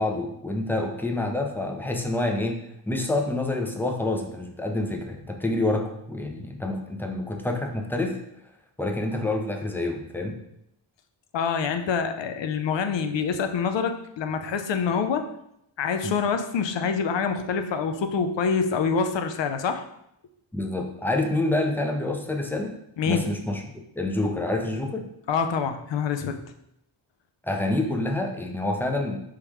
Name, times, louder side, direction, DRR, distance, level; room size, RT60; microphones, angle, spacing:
voice 1, 0.0-8.2 8.8-10.4 16.0-16.2 20.5-22.7 23.1-25.1 27.4-29.2, left 2 dB, 5° left, 3 dB, 0.5 m, -27 dB
voice 2, 11.3-15.3 15.8-19.8 23.0-23.2 25.3-26.4, left 6 dB, 65° left, 8 dB, 0.6 m, -26 dB
3.7 x 3.0 x 4.7 m, 0.78 s
wide cardioid pair, 120°, 47 cm